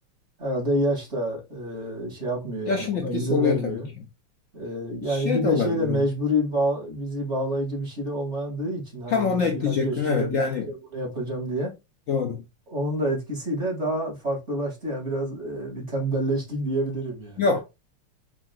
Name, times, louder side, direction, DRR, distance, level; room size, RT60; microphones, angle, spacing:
voice 1, 0.4-3.9 4.5-10.4 10.7-11.7 12.7-17.4, right 1 dB, 30° right, 2.7 m, -28 dB
voice 2, 2.7-3.8 5.0-6.0 9.1-10.7 12.1-12.4 17.4-17.6, left 5 dB, 85° left, 0.7 m, -25 dB
5.2 x 3.7 x 2.4 m
omnidirectional pair, 2.4 m